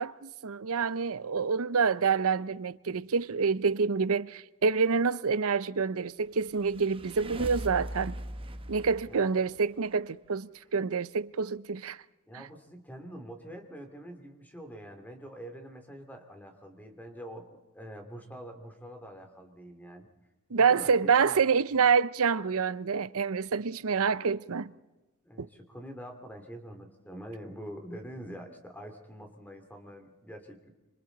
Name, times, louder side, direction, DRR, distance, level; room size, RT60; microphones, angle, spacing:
voice 1, 0.0-8.2 8.7-12.0 12.3-12.4 20.5-24.7 25.4-25.5, right 5 dB, 70° right, 0.7 m, -27 dB
sound 1, 6.3-9.9, right 1 dB, 25° right, 0.9 m, -40 dB
voice 2, 12.3-20.1 20.6-21.4 25.2-30.7, equal, 10° left, 2.6 m, -45 dB
27.0 x 25.5 x 4.0 m
head